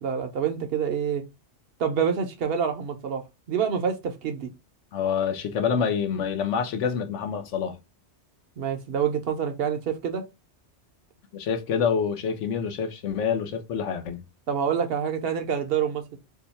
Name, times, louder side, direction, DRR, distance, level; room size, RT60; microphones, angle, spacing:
voice 1, 0.0-1.2 1.8-4.5 8.6-10.2 14.5-16.2, right 7 dB, 65° right, 0.7 m, -27 dB
voice 2, 4.9-7.8 11.3-14.2, left 7 dB, 85° left, 1.0 m, -27 dB
2.8 x 2.2 x 4.0 m
omnidirectional pair, 1.2 m